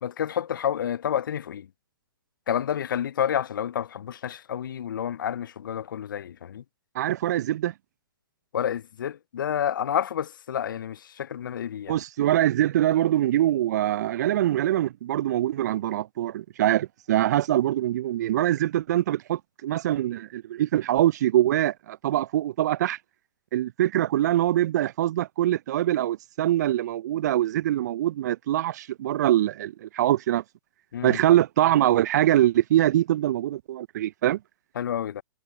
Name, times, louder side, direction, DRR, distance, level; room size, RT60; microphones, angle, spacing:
voice 1, 0.0-1.7 2.5-6.6 8.5-12.0 30.9-31.2 34.8-35.2, left 9 dB, 65° left, 0.6 m, -29 dB
voice 2, 6.9-7.7 11.9-23.0 23.5-30.4 31.0-34.4, right 13 dB, 50° right, 0.5 m, -23 dB
figure-of-eight pair, 120°, 12 cm